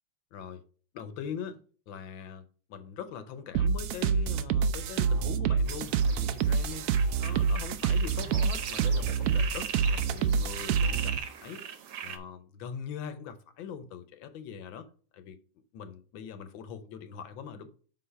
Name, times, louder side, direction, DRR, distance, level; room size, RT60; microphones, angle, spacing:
voice 1, 0.3-0.6 0.9-1.6 1.9-6.9 7.2-11.6 12.0-14.9 15.1-15.4 15.7-17.7, left 7 dB, 75° left, 1.5 m, -42 dB
sound 1, 3.5-11.2, right 6 dB, 80° right, 0.8 m, -27 dB
sound 2, 5.6-12.2, right 8 dB, 65° right, 1.3 m, -40 dB
5.7 x 4.0 x 5.6 m
omnidirectional pair, 2.2 m